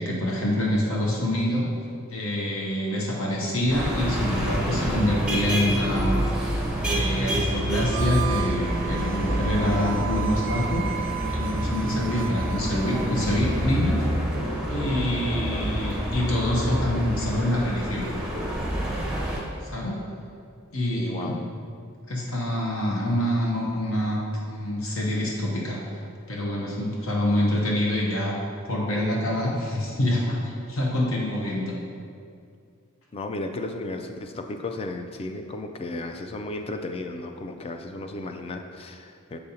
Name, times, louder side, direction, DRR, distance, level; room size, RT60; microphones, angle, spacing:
voice 1, 0.0-1.7 2.1-6.3 6.8-14.1 14.7-18.1 19.6-20.0 20.7-21.4 22.1-24.2 24.5-25.8 26.3-28.4 28.7-31.8, left 1 dB, 65° left, -2 dB, 0.8 m, -26 dB
sound 1, 3.7-19.4, right 1 dB, 5° right, 0.7 m, -28 dB
Harmonica, 7.8-13.5, right 13 dB, 70° right, 0.4 m, -36 dB
sound 2, 12.6-19.6, left 1 dB, 90° left, 1.3 m, -40 dB
voice 2, 20.9-21.5 33.1-39.4, left 2 dB, 25° left, 5 dB, 0.3 m, -34 dB
6.8 x 5.1 x 2.8 m, 2.3 s
head